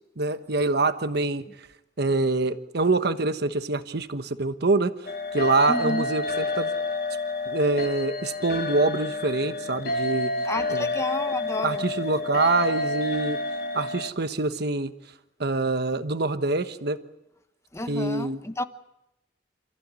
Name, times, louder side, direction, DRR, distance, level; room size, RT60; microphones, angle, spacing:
voice 1, 0.2-1.7 2.0-4.9 5.3-6.7 7.5-10.3 10.7-10.9 11.6-13.4 13.7-14.9 15.4-17.0 17.9-18.4, right 3 dB, 60° right, 10 dB, 1.2 m, -25 dB
sound 1, 5.1-14.1, left 2 dB, 55° left, 1.4 m, -29 dB
voice 2, 5.7-6.1 10.4-11.8 17.7-18.6, left 2 dB, 15° left, 9 dB, 1.2 m, -31 dB
28.0 x 15.0 x 9.7 m, 0.91 s
head